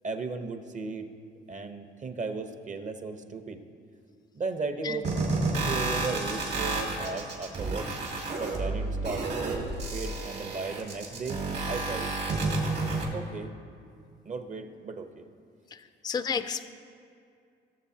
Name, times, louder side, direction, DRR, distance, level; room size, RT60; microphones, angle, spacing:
voice 1, 0.0-1.1 1.5-3.6 4.4-5.1 5.6-7.9 8.4-11.4 11.7-12.1 13.1-13.6 14.2-15.3, right 4 dB, 40° right, 8 dB, 0.8 m, -36 dB
sound 1, 5.0-13.0, right 3 dB, 60° right, 2.3 m, -30 dB
voice 2, 15.7-16.7, left 6 dB, 20° left, 10 dB, 0.4 m, -32 dB
18.5 x 7.0 x 2.8 m, 2.4 s
cardioid pair, 90°, 20 cm